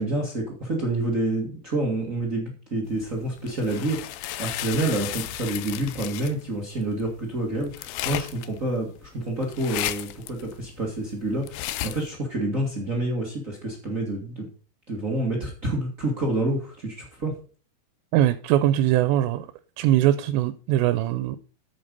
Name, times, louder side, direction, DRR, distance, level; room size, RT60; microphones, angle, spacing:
voice 1, 0.0-14.5 14.9-17.3, right 2 dB, 60° right, 0.8 m, -28 dB
sound 1, 2.9-12.1, left 14 dB, 85° left, 2.1 m, -34 dB
voice 2, 18.1-19.5 19.8-21.4, right 13 dB, 85° right, 2.9 m, -21 dB
8.8 x 7.7 x 5.3 m
omnidirectional pair, 4.9 m